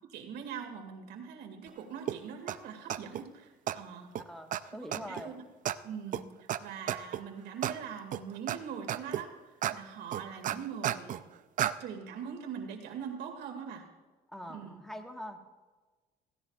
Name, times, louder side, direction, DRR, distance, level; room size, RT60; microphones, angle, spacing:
voice 1, 0.1-4.2 4.8-5.4 5.8-11.4 11.8-13.9 14.5-14.9, right 7 dB, 80° right, 3 dB, 2.2 m, -42 dB
sound 1, 2.1-2.2 2.5-2.6 2.9-3.2 3.7-3.8 4.2-4.3 4.5-4.6 4.9-5.2 5.7-5.8 6.1-6.2 6.5-6.6 6.9-7.2 7.6-7.7 8.1-8.6 8.9-9.2 9.6-9.7 10.1-11.2 11.6-11.7, right 11 dB, 50° right, 0.5 m, -32 dB
voice 2, 4.3-5.4 14.3-15.4, equal, ahead, 4 dB, 1.4 m, -43 dB
16.5 x 16.0 x 2.4 m, 1.3 s
cardioid pair, 110°, 17 cm